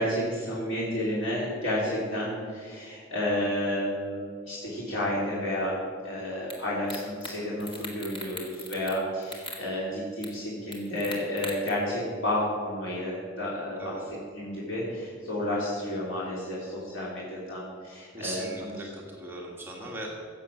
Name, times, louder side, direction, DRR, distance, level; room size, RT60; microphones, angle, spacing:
voice 1, 0.0-4.2 4.4-18.7, left 1 dB, 85° left, -7 dB, 3.1 m, -31 dB
sound 1, 6.5-6.6 6.9-7.3 7.6-9.0 9.2-9.6 10.2-10.3 10.7-11.7, left 1 dB, 25° left, 2.0 m, -39 dB
voice 2, 18.1-20.1, right 1 dB, 10° right, -2 dB, 1.6 m, -39 dB
16.0 x 7.5 x 6.1 m, 2.2 s
head